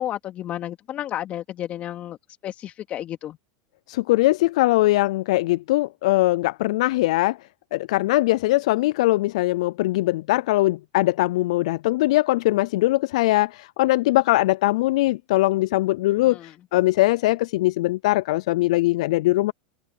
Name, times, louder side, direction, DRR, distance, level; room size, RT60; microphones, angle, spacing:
voice 1, 0.0-2.2 2.4-3.4 16.2-16.5, left 12 dB, 40° left, 2.5 m, -32 dB
voice 2, 3.9-7.4 7.7-19.5, left 18 dB, 70° left, 0.4 m, -21 dB
hypercardioid pair, 110°, 4 cm